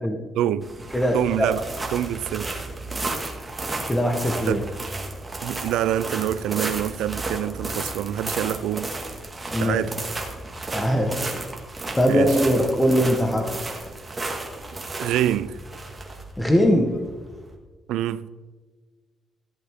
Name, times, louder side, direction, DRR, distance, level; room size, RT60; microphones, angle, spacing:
voice 1, 0.3-0.7 1.1-1.6 1.9-2.5 4.5-4.6 5.4-8.9 9.6-10.1 12.1-12.3 15.0-15.6 17.9-18.4, right 12 dB, 90° right, 0.4 m, -26 dB
sound 1, 0.6-17.5, right 2 dB, 20° right, 1.9 m, -33 dB
voice 2, 0.9-1.5 3.7-4.6 9.5-9.8 10.7-11.2 12.0-13.5 16.4-16.9, equal, 10° left, 1.3 m, -21 dB
14.5 x 8.0 x 3.7 m
cardioid pair, 90°, 0 cm